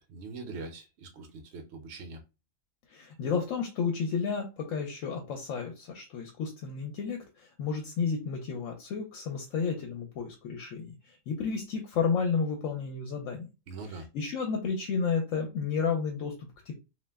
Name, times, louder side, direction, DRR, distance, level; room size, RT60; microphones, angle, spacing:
voice 1, 0.0-2.2 13.7-14.1, right 3 dB, 60° right, 0.8 m, -42 dB
voice 2, 2.9-13.5 13.9-16.7, left 5 dB, 75° left, 0.9 m, -32 dB
2.4 x 2.1 x 3.3 m
omnidirectional pair, 1.4 m